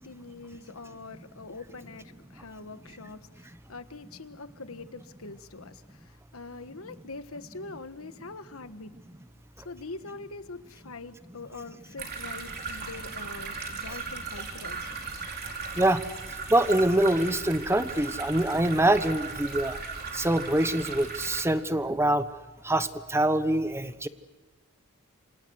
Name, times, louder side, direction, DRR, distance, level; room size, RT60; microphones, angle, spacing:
voice 1, 0.0-8.9 9.6-14.9, left 3 dB, 70° left, 11 dB, 1.5 m, -43 dB
sound 1, 12.0-21.4, right 4 dB, 45° right, 4.6 m, -37 dB
voice 2, 16.5-19.8 20.1-22.2 22.6-24.1, right 1 dB, 10° right, 12 dB, 1.1 m, -24 dB
28.0 x 26.5 x 6.4 m, 1.2 s
head